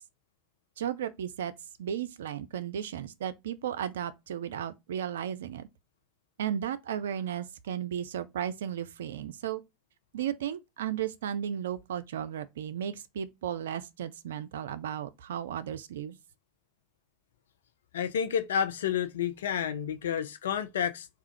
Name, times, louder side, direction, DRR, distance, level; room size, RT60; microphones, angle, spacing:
voice 1, 0.8-1.5 1.8-5.7 6.4-9.6 10.1-16.2, right 9 dB, 75° right, 0.4 m, -34 dB
voice 2, 17.9-21.1, left 8 dB, 75° left, 0.5 m, -30 dB
3.6 x 2.4 x 4.4 m
figure-of-eight pair, 75°, 0 cm